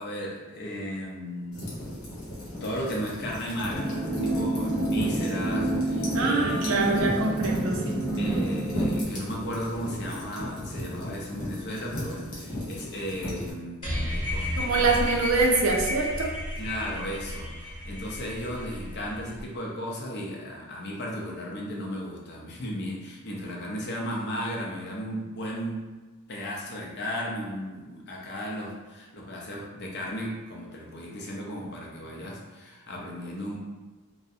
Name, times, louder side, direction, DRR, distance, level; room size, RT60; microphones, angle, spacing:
voice 1, 0.0-1.8 2.6-7.1 8.2-15.0 16.6-25.8 26.3-33.6, equal, 50° left, -2 dB, 0.5 m, -35 dB
sound 1, 1.5-13.5, left 1 dB, 80° left, 0.8 m, -37 dB
sound 2, 3.7-9.0, right 1 dB, ahead, 0.6 m, -28 dB
voice 2, 6.1-8.0 14.6-16.3, right 3 dB, 75° right, -1 dB, 0.5 m, -25 dB
sound 3, 13.8-19.4, left 1 dB, 25° left, 0.9 m, -33 dB
2.4 x 2.0 x 2.6 m, 1.3 s
head